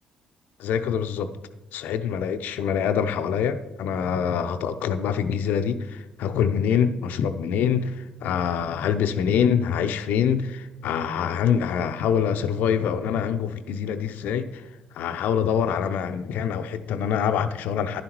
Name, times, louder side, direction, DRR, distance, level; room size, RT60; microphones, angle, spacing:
voice 1, 0.6-1.3 1.7-14.6 14.9-18.0, left 7 dB, 65° left, 10 dB, 0.6 m, -25 dB
11.0 x 10.5 x 3.1 m, 1.0 s
hypercardioid pair, 45°, 3 cm